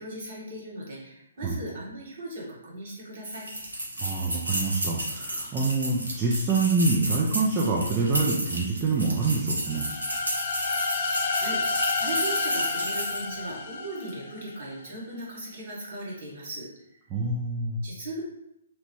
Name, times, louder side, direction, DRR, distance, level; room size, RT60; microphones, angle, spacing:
voice 1, 0.0-3.5 10.9-16.7 17.0-17.1 17.8-18.2, right 1 dB, 55° right, -5 dB, 1.2 m, -38 dB
sound 1, 3.3-13.3, right 1 dB, 85° right, 0.9 m, -32 dB
voice 2, 4.0-9.8 17.1-17.8, right 3 dB, 25° right, -3 dB, 0.4 m, -26 dB
sound 2, 9.7-14.5, left 4 dB, 45° left, 0.4 m, -30 dB
2.9 x 2.1 x 3.0 m, 0.83 s
figure-of-eight pair, 135°, 0 cm